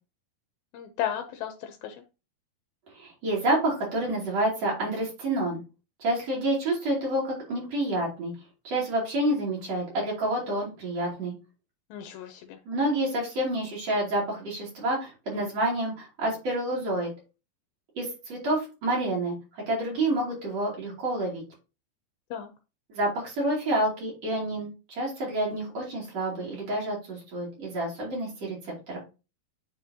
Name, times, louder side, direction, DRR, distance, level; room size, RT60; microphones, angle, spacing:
voice 1, 0.7-2.0 11.9-12.6 22.3-22.5, left 10 dB, 80° left, 5 dB, 2.5 m, -34 dB
voice 2, 2.9-5.6 6.0-8.3 8.6-11.3 12.7-17.1 18.0-21.4 22.9-29.0, right 1 dB, 45° right, -4 dB, 3.5 m, -28 dB
9.8 x 3.8 x 2.8 m, 0.30 s
omnidirectional pair, 4.3 m